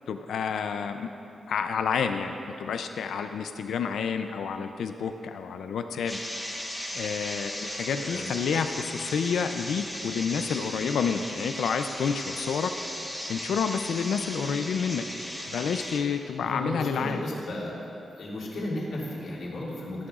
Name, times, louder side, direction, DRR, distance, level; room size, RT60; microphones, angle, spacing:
voice 1, 0.1-1.1 1.5-6.2 6.9-12.7 13.3-15.0 15.5-17.2, left 6 dB, 90° left, 7 dB, 0.4 m, -29 dB
sound 1, 6.1-16.0, equal, ahead, 1.0 m, -36 dB
voice 2, 16.4-17.8 18.2-20.1, left 1 dB, 65° left, -5 dB, 2.2 m, -34 dB
14.5 x 11.0 x 2.4 m, 2.8 s
wide cardioid pair, 180°, 0 cm